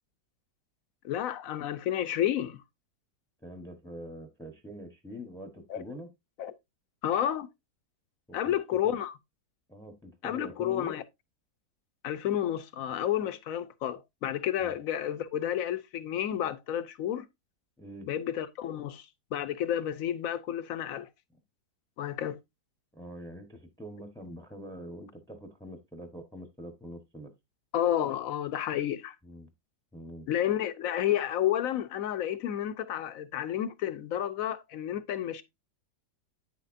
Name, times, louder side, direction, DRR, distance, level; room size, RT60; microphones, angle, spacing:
voice 1, 1.0-2.6 5.7-5.8 6.4-6.5 7.0-7.5 8.3-9.1 10.2-11.0 12.0-17.2 18.1-21.1 22.0-22.4 27.7-29.2 30.3-35.4, left 11 dB, 60° left, 1.0 m, -31 dB
voice 2, 3.4-6.1 8.3-9.0 9.7-10.9 14.6-14.7 17.8-18.1 22.9-27.3 29.2-29.5 29.9-30.3, equal, 5° left, 0.8 m, -44 dB
9.1 x 6.6 x 2.6 m
omnidirectional pair, 1.8 m